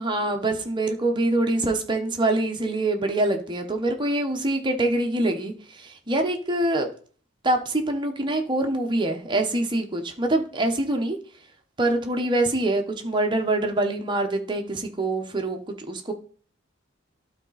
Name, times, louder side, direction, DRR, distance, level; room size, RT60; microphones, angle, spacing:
voice 1, 0.0-6.9 7.4-11.2 11.8-16.1, right 2 dB, 25° right, 4 dB, 1.0 m, -25 dB
12.0 x 4.1 x 4.0 m, 0.43 s
head